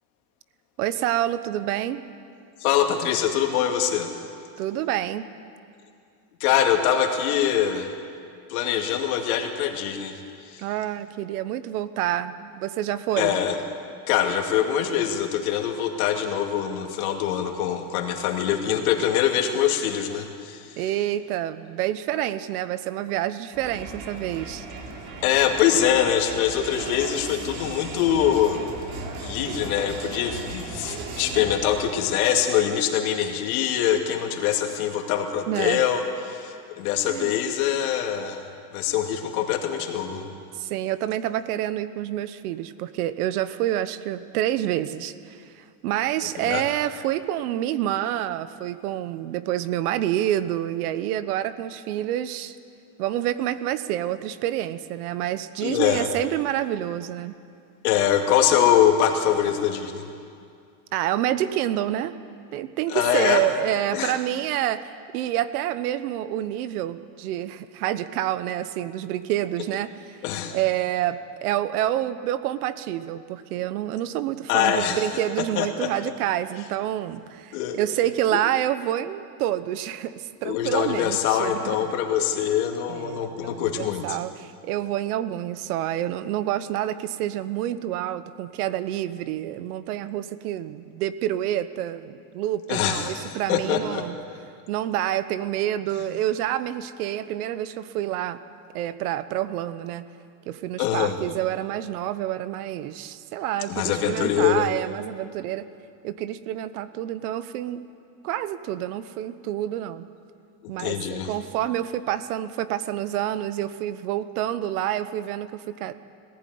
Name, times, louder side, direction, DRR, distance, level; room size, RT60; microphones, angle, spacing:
voice 1, 0.8-2.0 4.6-5.3 10.6-13.4 20.8-24.7 35.5-35.8 37.1-37.4 40.5-52.6 53.0-57.3 60.9-62.1 62.5-70.2 70.5-81.9 82.9-94.2 94.7-98.4 98.7-100.1 100.4-105.7 106.0-107.8 108.2-110.1 110.7-115.9, right 12 dB, 85° right, 14 dB, 1.1 m, -28 dB
voice 2, 2.6-4.1 6.4-7.9 8.5-10.6 13.2-13.6 14.1-20.8 25.2-28.6 29.2-36.0 36.3-38.4 38.7-40.3 46.4-46.6 55.6-56.1 57.8-60.0 62.9-63.4 63.9-64.2 70.2-70.6 74.5-75.0 75.6-75.9 77.5-77.8 80.4-84.2 92.7-94.0 100.8-101.2 103.7-104.7 110.8-111.3, left 9 dB, 80° left, 3 dB, 2.5 m, -23 dB
Crowd, 23.5-32.4, right 3 dB, 70° right, 3.3 m, -37 dB
19.0 x 15.0 x 9.5 m, 2.4 s
cardioid pair, 175°, 43 cm